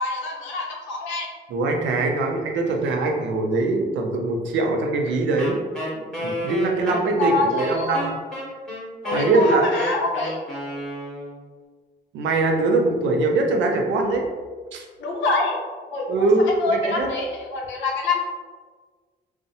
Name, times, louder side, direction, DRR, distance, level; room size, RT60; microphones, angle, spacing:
voice 1, 0.0-1.3 7.2-8.1 9.0-10.4 15.0-15.6 15.9-18.2, left 2 dB, 80° left, -1 dB, 0.6 m, -25 dB
voice 2, 1.5-5.6 5.9-8.2 9.1-9.6 12.1-14.3 14.7-14.8 16.1-17.1, right 2 dB, 80° right, 2 dB, 0.4 m, -22 dB
Wind instrument woodwind instrument, 5.4-11.4, equal, 5° left, 0.9 m, -31 dB
2.5 x 2.0 x 2.6 m, 1.5 s
supercardioid pair, 65°, 19 cm